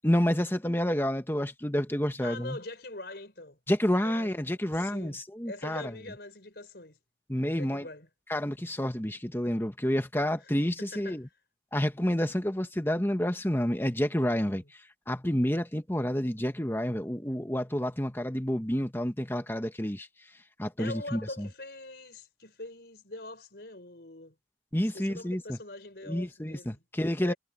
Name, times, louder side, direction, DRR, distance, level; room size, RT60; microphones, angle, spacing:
voice 1, 0.0-2.6 3.7-5.9 7.3-7.8 8.3-11.2 11.7-14.6 15.1-20.1 20.6-21.5 24.7-25.6 26.1-27.3, equal, 10° left, 1.5 m, -29 dB
voice 2, 2.2-3.6 4.0-4.3 4.6-5.2 5.4-7.0 7.5-8.1 10.4-10.5 10.8-11.3 14.5-14.7 20.8-24.4 24.9-26.8 27.2-27.4, left 2 dB, 60° left, 5.7 m, -43 dB
head